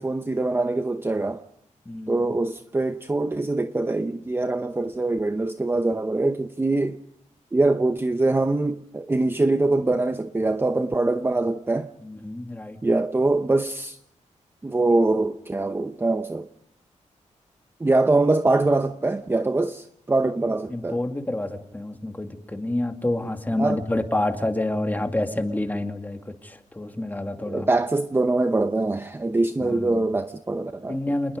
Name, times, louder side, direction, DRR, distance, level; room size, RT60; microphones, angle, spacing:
voice 1, 0.0-1.4 2.1-7.0 7.5-11.9 12.8-14.0 14.6-16.5 17.8-21.0 23.6-23.8 27.5-31.0, right 2 dB, 15° right, 0.8 m, -23 dB
voice 2, 1.9-2.3 12.0-12.8 20.7-27.7 29.6-30.1 30.9-31.4, left 1 dB, 15° left, 2.3 m, -28 dB
28.0 x 20.5 x 5.1 m
wide cardioid pair, 105°, 13 cm